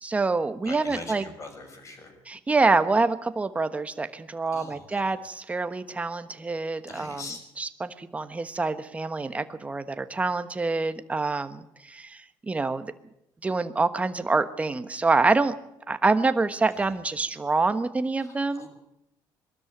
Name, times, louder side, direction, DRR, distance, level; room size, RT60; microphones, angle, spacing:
voice 1, 0.0-1.2 2.3-7.2 7.6-12.9 13.4-15.5 15.9-18.7, right 3 dB, 15° right, 10 dB, 1.2 m, -26 dB
voice 2, 0.6-2.2 4.5-5.1 6.9-7.4 16.7-17.0 18.2-18.7, left 3 dB, 35° left, 4 dB, 6.2 m, -42 dB
22.5 x 13.0 x 9.3 m, 0.83 s
cardioid pair, 135°, 9 cm